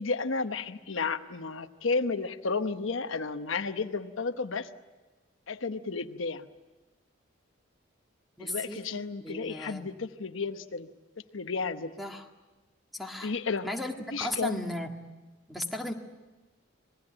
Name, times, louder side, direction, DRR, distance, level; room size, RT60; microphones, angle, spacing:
voice 1, 0.0-4.7 5.5-6.5 8.4-10.9 11.3-11.9 13.2-13.7 14.1-14.6, left 4 dB, 80° left, 8 dB, 1.0 m, -32 dB
voice 2, 8.4-8.8 9.2-9.9 12.0-12.3 12.9-13.3 13.6-14.9 15.5-15.9, left 1 dB, ahead, 3 dB, 1.8 m, -35 dB
26.5 x 20.0 x 8.9 m, 1.2 s
head